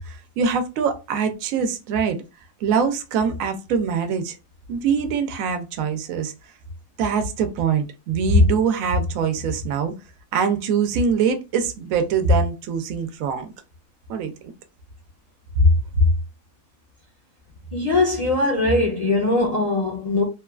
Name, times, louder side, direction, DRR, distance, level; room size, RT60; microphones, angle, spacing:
voice 1, 0.1-2.2 2.6-4.3 4.7-6.3 7.0-9.9 10.3-13.5 14.1-14.3 15.6-16.1, right 3 dB, 75° right, 1.0 m, -22 dB
voice 2, 17.7-20.2, left 2 dB, 50° left, 0.4 m, -21 dB
3.1 x 2.3 x 2.3 m
omnidirectional pair, 1.5 m